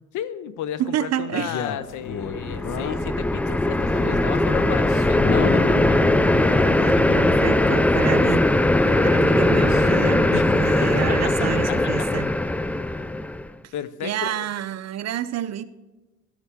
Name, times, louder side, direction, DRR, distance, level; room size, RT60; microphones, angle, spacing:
voice 1, 0.1-6.1 6.8-7.3 10.3-10.5 10.8-11.2 11.7-11.8 13.7-14.5, left 10 dB, 85° left, 15 dB, 0.7 m, -33 dB
voice 2, 0.8-1.6 6.6-8.5 9.0-12.3 13.6-13.7 14.0-15.6, right 10 dB, 60° right, 14 dB, 0.6 m, -28 dB
Male speech man speaking, 1.4-3.2 3.8-5.7 6.3-8.0 8.7-10.7, left 6 dB, 65° left, 1.0 m, -34 dB
sound 1, 2.1-13.5, left 1 dB, 5° left, 0.3 m, -20 dB
Explosion, 5.2-7.9, left 4 dB, 25° left, 0.8 m, -28 dB
14.0 x 11.5 x 3.5 m, 1.1 s
cardioid pair, 90°, 30 cm